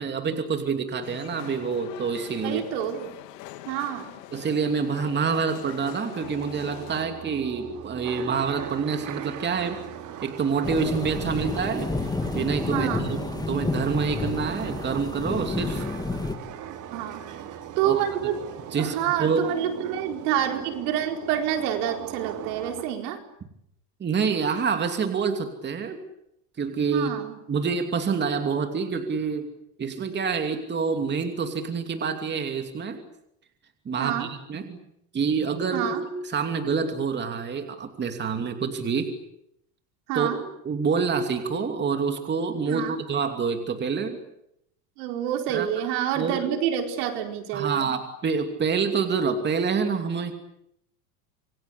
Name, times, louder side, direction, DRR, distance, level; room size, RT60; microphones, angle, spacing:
voice 1, 0.0-2.6 4.3-9.8 10.2-12.1 12.3-15.9 17.8-18.0 18.7-19.4 24.0-26.0 26.6-27.1 27.5-29.5 29.8-33.0 33.8-34.8 35.1-39.1 40.1-40.3 40.6-44.2 45.5-45.7 46.2-46.5 47.5-50.4, right 5 dB, 20° right, 6 dB, 2.8 m, -27 dB
sound 1, 1.0-7.0, left 13 dB, 80° left, 3.0 m, -43 dB
voice 2, 2.4-3.2 3.7-4.1 12.7-13.1 16.9-17.2 17.8-18.4 18.8-23.2 26.9-27.3 34.0-34.3 35.7-36.0 40.1-40.4 42.7-43.0 45.0-47.9, right 10 dB, 70° right, 5 dB, 4.9 m, -28 dB
sound 2, 6.2-22.8, right 10 dB, 40° right, 2.8 m, -40 dB
sound 3, 10.6-16.4, left 3 dB, 10° left, 2.3 m, -30 dB
27.5 x 23.5 x 8.5 m, 0.76 s
supercardioid pair, 140°, 48 cm